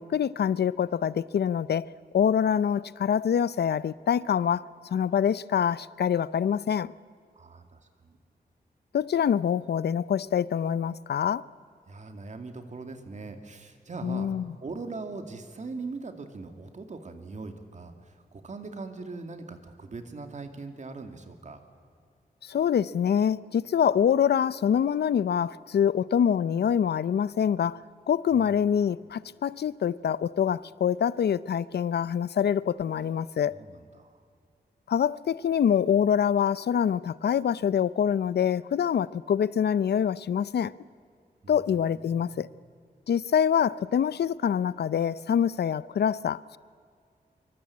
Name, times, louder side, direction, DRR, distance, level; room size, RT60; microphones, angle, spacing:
voice 1, 0.0-6.9 8.9-11.4 14.0-14.5 22.4-27.8 28.1-33.5 34.9-40.7 41.5-42.5 43.1-46.6, left 8 dB, 85° left, 0.6 m, -25 dB
voice 2, 7.3-8.2 11.9-14.3 14.6-21.6 28.4-28.5 32.9-33.1 33.5-34.2 41.4-42.6, right 3 dB, 45° right, 2.4 m, -41 dB
25.5 x 24.0 x 8.6 m
wide cardioid pair, 155°, 17 cm